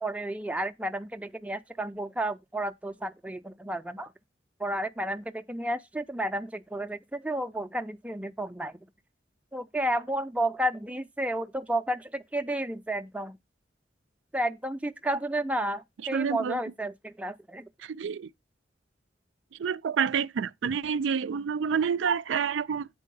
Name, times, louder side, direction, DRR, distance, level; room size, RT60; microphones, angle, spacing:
voice 1, 0.0-4.1 4.6-8.8 9.5-13.4 14.3-17.7, right 1 dB, 10° right, 0.4 m, -32 dB
voice 2, 16.1-16.6 17.8-18.3 19.5-22.9, right 6 dB, 85° right, 0.4 m, -28 dB
8.4 x 4.4 x 5.3 m
head